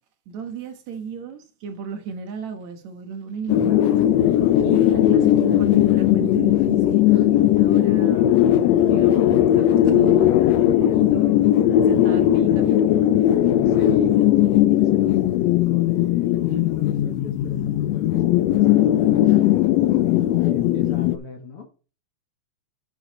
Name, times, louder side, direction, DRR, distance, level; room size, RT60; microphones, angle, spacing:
voice 1, 0.3-4.0 4.6-8.4 8.8-10.4 10.6-11.5 11.9-12.8, right 6 dB, 70° right, 2.5 m, -34 dB
sound 1, 3.5-21.2, left 12 dB, 75° left, 1.7 m, -18 dB
voice 2, 7.1-7.9 13.6-19.4 20.4-21.7, left 5 dB, 55° left, 2.0 m, -38 dB
9.4 x 7.1 x 4.1 m
omnidirectional pair, 3.5 m